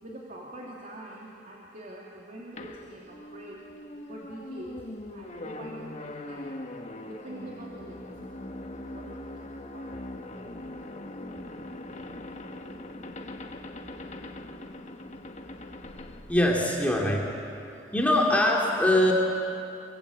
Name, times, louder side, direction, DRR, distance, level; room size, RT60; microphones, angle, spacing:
voice 1, 0.0-3.6 4.1-4.8 5.1-6.5 7.1-8.0 8.3-8.4 8.9-10.1, right 1 dB, 45° right, -4 dB, 2.8 m, -44 dB
sound 1, 2.6-17.1, left 1 dB, 40° left, 1.3 m, -41 dB
voice 2, 16.3-17.3 17.9-19.1, left 1 dB, 10° left, -2 dB, 2.4 m, -23 dB
26.0 x 22.5 x 8.3 m, 2.7 s
head